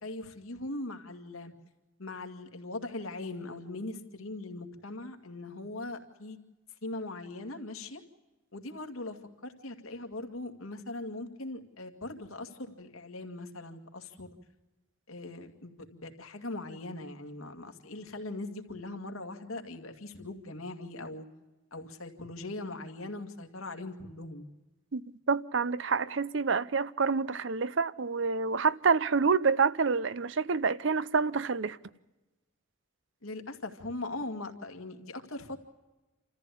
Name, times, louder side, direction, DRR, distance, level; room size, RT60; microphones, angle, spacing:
voice 1, 0.0-1.5 2.0-6.4 6.8-8.0 8.5-9.2 9.4-14.3 15.1-21.3 21.7-24.5 33.2-35.6, left 2 dB, 80° left, 2.2 m, -40 dB
voice 2, 25.3-31.8, right 5 dB, 60° right, 0.6 m, -27 dB
28.0 x 14.5 x 8.4 m
head